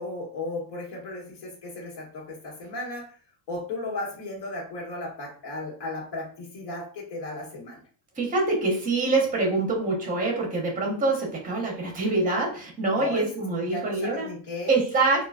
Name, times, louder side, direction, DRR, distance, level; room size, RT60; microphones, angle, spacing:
voice 1, 0.0-3.1 3.5-7.8 13.0-14.7, left 2 dB, 55° left, -3 dB, 1.5 m, -35 dB
voice 2, 8.2-14.3 14.7-15.3, right 3 dB, 15° right, -1 dB, 0.9 m, -25 dB
3.8 x 2.5 x 2.4 m, 0.41 s
cardioid pair, 160°, 47 cm